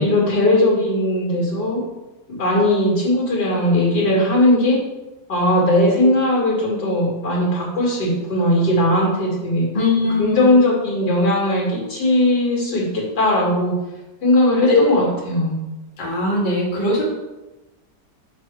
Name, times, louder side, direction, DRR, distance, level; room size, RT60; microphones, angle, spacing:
voice 1, 0.0-1.8 2.3-4.8 5.3-9.6 10.2-13.7 14.2-15.6, left 1 dB, 65° left, -4 dB, 2.8 m, -18 dB
voice 2, 9.7-10.5 14.6-14.8 16.0-17.0, left 3 dB, 30° left, -4 dB, 1.5 m, -20 dB
6.3 x 4.6 x 4.7 m, 1.1 s
omnidirectional pair, 1.9 m